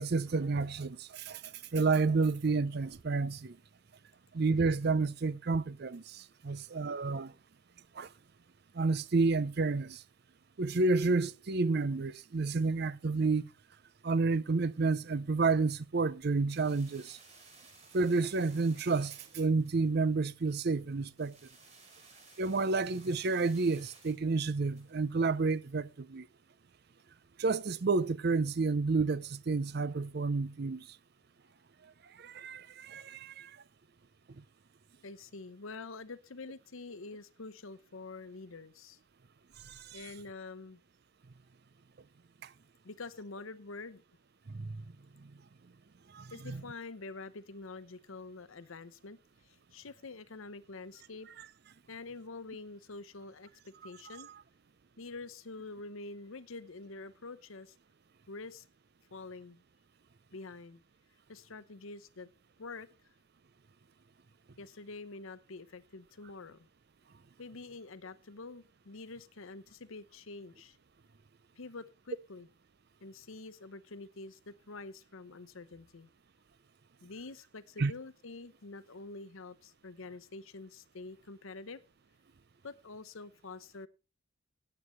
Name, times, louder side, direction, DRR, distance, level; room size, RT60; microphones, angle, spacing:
voice 1, 0.0-3.6 4.3-7.3 8.0-8.1 8.7-10.0 10.6-13.5 14.0-17.2 17.9-21.4 22.4-26.3 27.4-30.9 32.2-33.6 39.7-40.0 42.4-42.5 44.5-44.8 45.2-45.3 46.1-46.6 77.8-77.9, right 3 dB, 50° right, 0.5 m, -30 dB
sound 1, 16.5-25.9, right 4 dB, 30° right, 3.7 m, -58 dB
voice 2, 35.0-39.0 39.9-40.8 42.8-44.0 46.3-49.2 49.4-51.3 51.9-54.3 55.0-57.7 58.3-58.6 59.1-59.6 60.3-60.8 61.3-62.3 62.6-62.9 64.6-66.7 67.4-70.8 71.6-72.5 73.0-76.1 77.0-81.8 82.6-83.9, left 3 dB, 70° left, 0.8 m, -46 dB
18.0 x 8.8 x 3.1 m
head